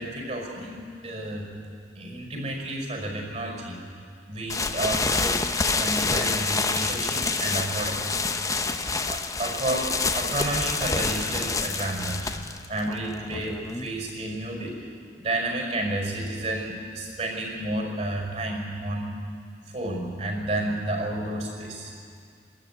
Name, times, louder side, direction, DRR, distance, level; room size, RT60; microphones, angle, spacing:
voice 1, 0.0-1.5 2.0-3.8 4.3-5.4 5.8-8.0 8.6-8.8 9.1-14.8 15.2-19.1 19.7-21.9, right 1 dB, 40° right, 1 dB, 5.7 m, -31 dB
sound 1, 4.5-14.1, left 4 dB, 20° left, 0.7 m, -27 dB
23.0 x 13.5 x 9.8 m, 2.2 s
head